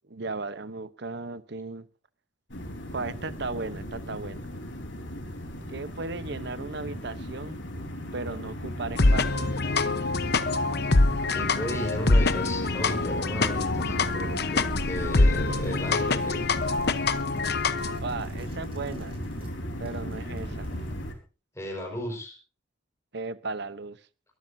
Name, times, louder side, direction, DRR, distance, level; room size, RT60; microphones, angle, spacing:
voice 1, 0.1-1.9 2.9-4.4 5.7-7.6 8.1-9.5 18.0-19.1 19.8-20.7 23.1-24.0, right 3 dB, 60° right, 0.9 m, -36 dB
sound 1, 2.5-21.1, equal, 75° left, 4.1 m, -35 dB
sound 2, 9.0-18.0, left 3 dB, 55° left, 1.0 m, -25 dB
voice 2, 11.3-16.4 21.5-22.3, equal, 15° left, 5.0 m, -35 dB
sound 3, 15.4-19.6 19.8-21.2, right 1 dB, 30° right, 6.4 m, -48 dB
23.5 x 13.5 x 2.7 m
head